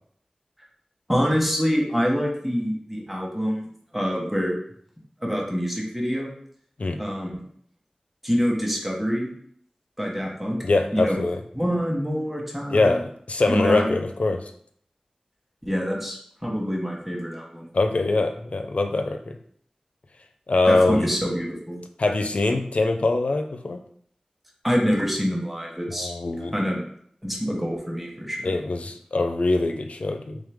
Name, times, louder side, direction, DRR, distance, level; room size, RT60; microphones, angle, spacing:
voice 1, 1.1-3.7 3.9-4.5 5.2-6.3 7.0-7.4 8.2-9.3 10.0-10.6 10.9-11.2 11.5-13.0 13.5-14.0 15.6-17.7 20.7-21.8 24.6-26.1 26.5-26.8 27.2-28.5, equal, 5° right, -1 dB, 1.0 m, -26 dB
voice 2, 10.6-11.4 12.7-14.5 17.7-19.4 20.5-21.1 22.0-23.8 25.9-26.5 28.4-30.4, left 2 dB, 75° left, 6 dB, 0.4 m, -23 dB
3.7 x 3.2 x 3.5 m, 0.64 s
wide cardioid pair, 55°, 2 cm